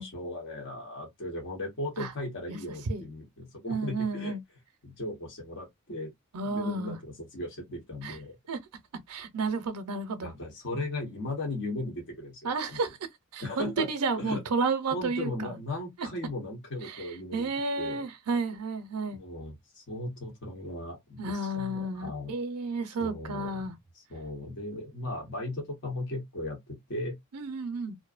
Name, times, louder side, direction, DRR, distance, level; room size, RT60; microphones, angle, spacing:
voice 1, 0.0-4.3 4.8-6.1 6.4-8.4 10.2-12.8 13.4-13.9 14.2-14.4 14.8-17.5 17.8-18.1 19.1-22.3 22.9-23.6 23.9-27.2, left 2 dB, 55° left, 1.0 m, -37 dB
voice 2, 3.7-4.4 6.3-7.0 8.0-8.2 8.5-8.6 9.1-10.3 12.4-13.0 13.3-15.5 16.8-19.2 21.2-23.7 27.3-28.0, right 3 dB, 80° right, 0.5 m, -32 dB
2.6 x 2.1 x 2.4 m
head